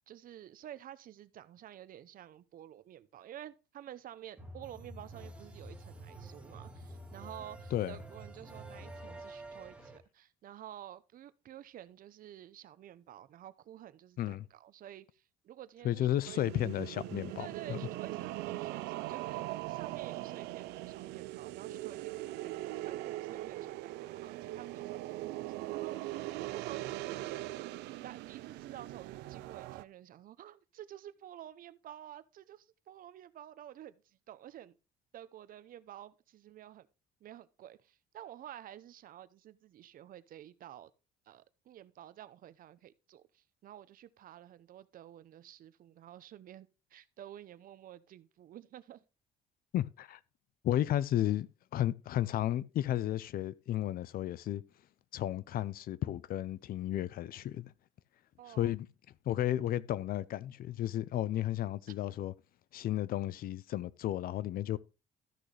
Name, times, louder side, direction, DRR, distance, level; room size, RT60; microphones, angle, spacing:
voice 1, 0.1-16.4 17.4-27.4 28.0-34.8 35.1-36.9 37.2-40.9 41.3-49.0 58.4-58.8, right 11 dB, 55° right, 0.7 m, -51 dB
sound 1, 4.4-10.0, right 2 dB, 5° right, 2.0 m, -48 dB
voice 2, 15.8-17.8 49.7-50.2 50.6-51.5 51.7-54.6 55.1-57.7 58.6-58.9 59.3-62.3 62.7-64.8, left 12 dB, 60° left, 0.6 m, -33 dB
sound 2, 16.2-29.8, right 17 dB, 90° right, 0.5 m, -40 dB
13.5 x 6.2 x 3.3 m
cardioid pair, 110°, 17 cm